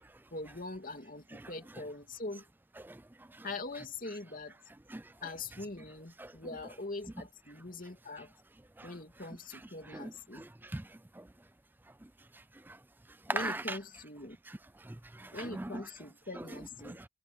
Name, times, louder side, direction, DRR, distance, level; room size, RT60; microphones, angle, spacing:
voice 1, 0.3-2.4 3.4-4.6 5.2-8.3 8.8-10.5 13.3-14.4 15.3-17.0, left 2 dB, 40° left, 2.9 m, -42 dB
voice 2, 9.9-11.3 12.7-12.8 13.3-13.8 14.5-14.6 14.8-15.8 16.8-17.1, right 2 dB, 10° right, 0.4 m, -40 dB
head